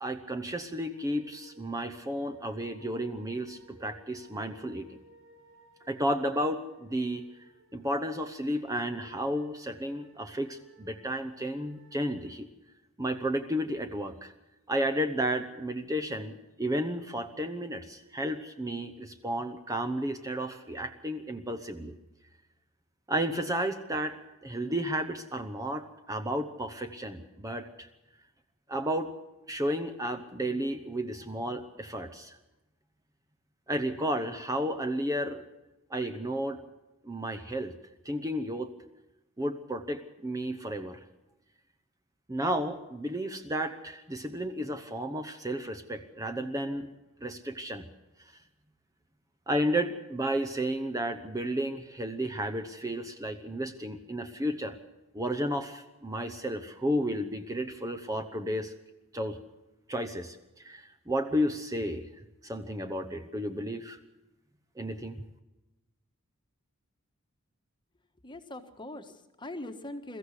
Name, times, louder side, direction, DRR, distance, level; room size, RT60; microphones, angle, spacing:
voice 1, 0.0-5.0 5.9-7.3 7.7-12.5 13.0-14.3 14.7-22.0 23.1-24.2 24.4-27.9 28.7-29.1 29.5-32.4 33.7-35.4 35.9-36.6 37.0-37.7 38.0-38.7 39.4-41.0 42.3-46.9 47.2-47.9 49.5-54.8 55.1-58.7 59.1-59.4 59.9-62.1 62.4-64.0 64.8-65.2, equal, 15° right, 7 dB, 0.9 m, -32 dB
sound 1, 0.6-12.3, right 1 dB, 65° right, 6.7 m, -59 dB
voice 2, 68.2-70.2, left 1 dB, 20° left, 7 dB, 1.4 m, -41 dB
22.0 x 14.5 x 8.2 m, 1.0 s
head